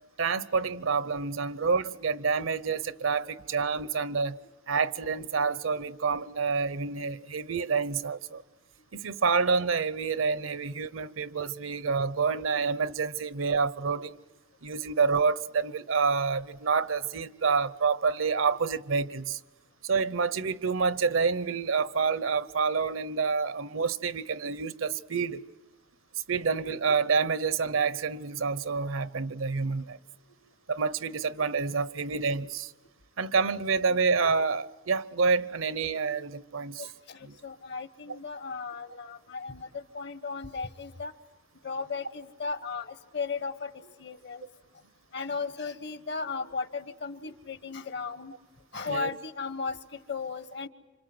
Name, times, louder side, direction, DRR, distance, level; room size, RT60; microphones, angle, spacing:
voice 1, 0.2-4.4 4.7-8.4 8.9-14.2 14.6-19.4 19.8-25.4 26.3-30.0 30.7-32.7 33.2-36.9 37.2-37.4 48.9-49.1, right 5 dB, 80° right, 0.8 m, -28 dB
voice 2, 36.8-41.1 41.6-44.4 45.1-48.3 48.7-50.7, left 4 dB, 60° left, 1.2 m, -36 dB
28.5 x 26.0 x 7.8 m
head